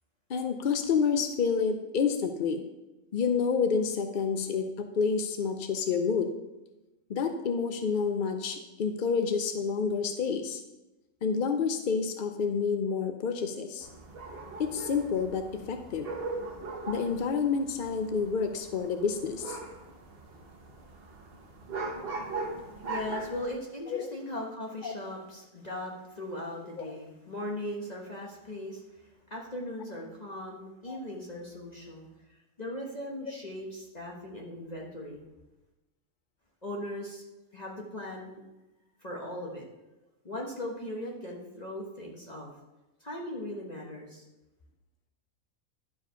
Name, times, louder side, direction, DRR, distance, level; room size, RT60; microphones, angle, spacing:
voice 1, 0.3-2.6 3.1-6.3 7.1-10.6 11.2-13.9 14.6-16.1 16.9-19.6 23.9-24.1 24.8-24.9 26.8-26.9 30.9-31.0, left 5 dB, 55° left, 7 dB, 0.5 m, -29 dB
sound 1, 13.8-23.4, right 3 dB, 45° right, 1.3 m, -40 dB
voice 2, 22.3-35.2 36.6-37.2 37.5-38.4 39.0-39.6 40.2-42.5 43.0-44.2, left 1 dB, 30° left, -2 dB, 1.2 m, -39 dB
11.0 x 4.9 x 5.6 m, 1.0 s
omnidirectional pair, 1.5 m